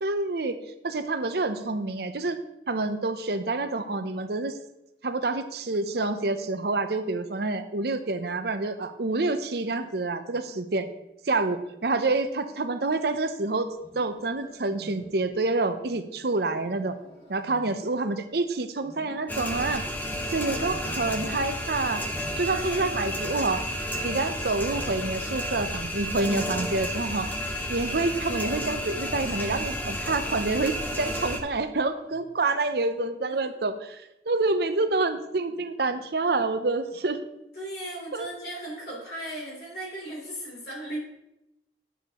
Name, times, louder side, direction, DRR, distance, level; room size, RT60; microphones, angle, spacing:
voice 1, 0.0-2.4 2.7-4.5 5.0-10.9 11.2-17.0 17.3-19.8 20.3-22.0 22.4-23.6 24.0-27.3 27.7-37.2 38.1-38.3, right 3 dB, 60° right, 9 dB, 0.7 m, -27 dB
Wild animals, 13.7-15.4 16.5-18.4 18.8-20.0 20.6-21.7 21.9-24.5 24.7-29.6 30.0-30.4 30.9-31.3 32.0-32.5, equal, 30° left, 2.5 m, -49 dB
sound 1, 19.3-31.4, equal, 10° left, 0.9 m, -32 dB
voice 2, 20.4-21.2 22.5-23.1 37.5-41.0, right 1 dB, 60° left, -3 dB, 3.6 m, -37 dB
9.9 x 9.1 x 3.1 m, 0.87 s
head